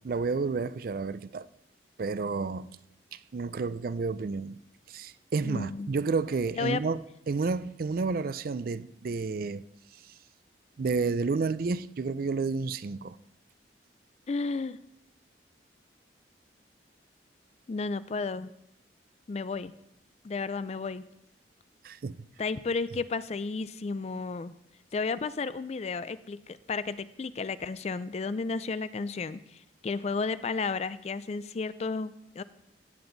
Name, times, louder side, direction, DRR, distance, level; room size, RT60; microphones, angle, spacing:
voice 1, 0.0-1.5 2.0-2.8 3.1-4.6 4.9-9.6 10.0-10.1 10.8-13.2 21.8-22.2, right 4 dB, 55° right, 0.4 m, -31 dB
voice 2, 5.4-5.9 6.6-6.8 14.3-14.8 17.7-18.5 19.3-19.7 20.2-21.0 22.4-24.6 24.9-32.4, left 4 dB, 35° left, 0.4 m, -33 dB
16.0 x 7.9 x 4.0 m
head